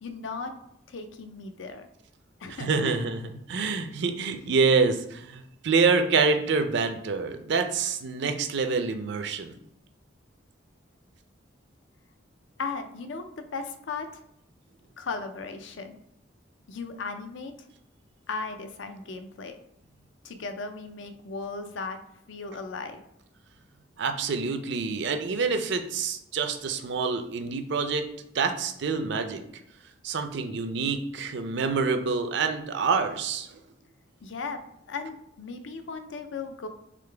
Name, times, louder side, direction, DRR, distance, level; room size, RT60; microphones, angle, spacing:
voice 1, 0.0-0.5 0.9-1.9 2.4-3.0 12.6-14.2 15.0-16.0 16.7-17.5 18.3-19.6 20.2-22.0 22.3-23.0 34.2-34.6 34.9-36.7, left 4 dB, 70° left, 8 dB, 0.5 m, -36 dB
voice 2, 2.5-9.6 24.0-28.1 28.3-29.4 30.0-33.6, right 4 dB, 65° right, 7 dB, 0.5 m, -26 dB
3.8 x 3.3 x 3.3 m, 0.78 s
head